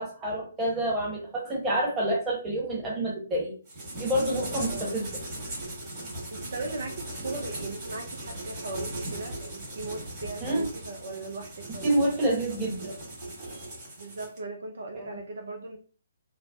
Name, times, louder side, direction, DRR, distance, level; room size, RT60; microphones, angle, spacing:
voice 1, 0.0-3.5 4.0-5.1 10.4-10.7 11.8-12.9 14.9-15.2, right 1 dB, 15° right, -3 dB, 1.1 m, -28 dB
sound 1, 3.7-14.4, right 1 dB, 30° right, 1.5 m, -38 dB
voice 2, 4.7-5.0 6.3-12.1 14.0-15.8, right 3 dB, 65° right, 3 dB, 0.5 m, -38 dB
3.2 x 2.1 x 2.4 m, 0.39 s
figure-of-eight pair, 140°, 0 cm